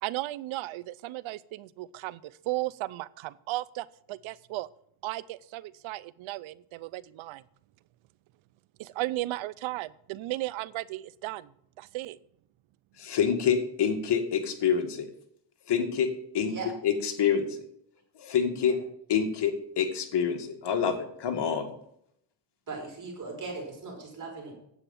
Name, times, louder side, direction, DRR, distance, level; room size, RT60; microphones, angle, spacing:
voice 1, 0.0-4.7 5.0-7.4 8.8-11.5 11.8-12.2, right 17 dB, 80° right, 19 dB, 0.7 m, -35 dB
voice 2, 13.0-15.1 15.7-16.1 16.3-16.5 16.8-17.6 18.2-18.7 19.1-21.7, left 7 dB, 60° left, 4 dB, 2.2 m, -27 dB
voice 3, 22.7-24.5, right 3 dB, 40° right, 0 dB, 5.1 m, -39 dB
9.7 x 7.9 x 7.2 m, 0.72 s
cardioid pair, 95°, 47 cm